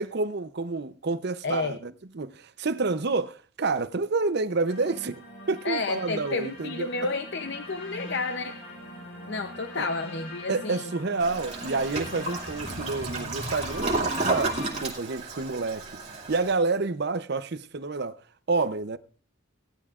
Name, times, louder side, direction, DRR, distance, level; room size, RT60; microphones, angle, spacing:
voice 1, 0.0-5.2 5.5-7.1 9.8-9.9 10.5-16.0 16.3-18.2 18.5-19.0, right 3 dB, 55° right, 0.6 m, -29 dB
voice 2, 1.4-1.8 5.6-8.5 9.3-10.9, left 3 dB, 60° left, 0.7 m, -31 dB
sound 1, 4.7-14.8, left 1 dB, 85° left, 3.9 m, -43 dB
Toilet flush, 11.2-16.5, right 2 dB, 35° right, 2.3 m, -32 dB
17.5 x 12.0 x 2.4 m
head